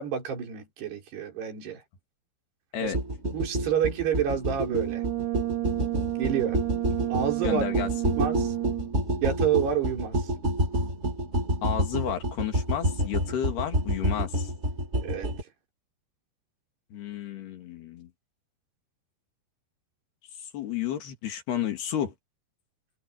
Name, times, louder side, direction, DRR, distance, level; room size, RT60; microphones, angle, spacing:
voice 1, 0.0-1.8 2.8-2.9 3.3-5.0 6.2-6.6 7.1-7.6 8.2-8.5 9.2-10.3 15.0-15.3, right 8 dB, 70° right, 6.8 m, -28 dB
sound 1, 2.9-15.4, equal, 15° right, 3.1 m, -28 dB
Brass instrument, 4.7-9.0, right 16 dB, 90° right, 3.4 m, -31 dB
voice 2, 7.4-7.9 11.6-14.5 16.9-18.1 20.5-22.1, left 9 dB, 70° left, 4.8 m, -31 dB
omnidirectional pair, 4.9 m